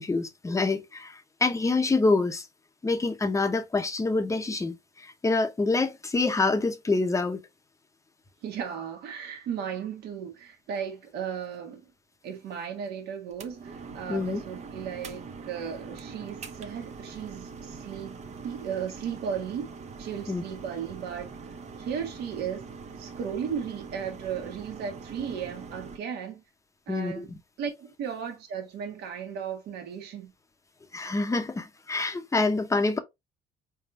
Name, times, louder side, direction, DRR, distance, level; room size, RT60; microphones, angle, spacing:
voice 1, 0.0-2.4 2.8-7.4 14.1-14.4 20.3-20.4 26.9-27.3 30.9-33.0, left 3 dB, 20° left, 0.8 m, -26 dB
voice 2, 8.4-11.9 12.2-18.2 18.4-19.7 20.0-22.7 23.0-26.4 26.9-27.3 27.6-30.3, right 7 dB, 75° right, 1.4 m, -35 dB
sound 1, 13.3-26.0, right 5 dB, 40° right, 0.7 m, -43 dB
4.2 x 3.5 x 2.5 m
cardioid pair, 110°, 17 cm